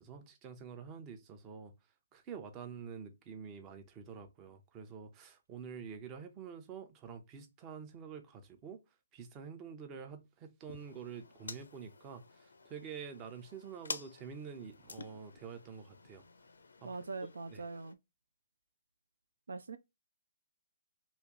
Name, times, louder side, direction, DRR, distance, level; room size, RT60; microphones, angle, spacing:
voice 1, 0.0-1.7 2.1-8.8 9.1-16.2 16.8-16.9 17.5-17.6, right 6 dB, 25° right, 0.7 m, -47 dB
sound 1, 10.7-17.9, left 4 dB, 75° left, 0.4 m, -50 dB
voice 2, 16.8-18.0 19.5-19.8, right 3 dB, 75° right, 0.4 m, -42 dB
3.0 x 2.7 x 3.5 m
figure-of-eight pair, 135°, 0 cm